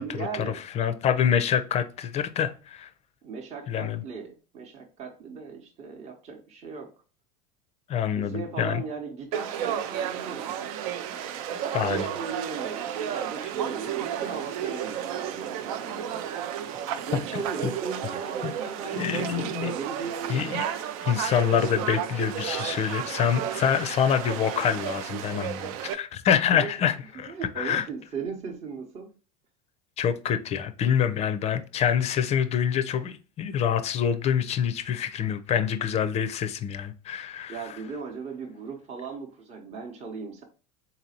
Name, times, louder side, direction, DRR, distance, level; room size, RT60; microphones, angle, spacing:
voice 1, 0.0-0.6 3.2-6.9 8.1-10.6 11.8-16.3 17.1-20.5 26.5-26.9 27.3-29.1 37.5-40.4, right 5 dB, 35° right, 0.8 m, -37 dB
voice 2, 0.7-2.9 3.7-4.0 7.9-8.8 11.7-12.1 17.3-17.7 18.4-18.5 18.9-19.7 20.3-20.6 21.0-27.8 30.0-37.6, left 8 dB, 35° left, 0.5 m, -26 dB
Conversation / Crowd, 9.3-25.9, right 10 dB, 65° right, 0.5 m, -32 dB
4.0 x 2.7 x 2.8 m
hypercardioid pair, 95°, 20 cm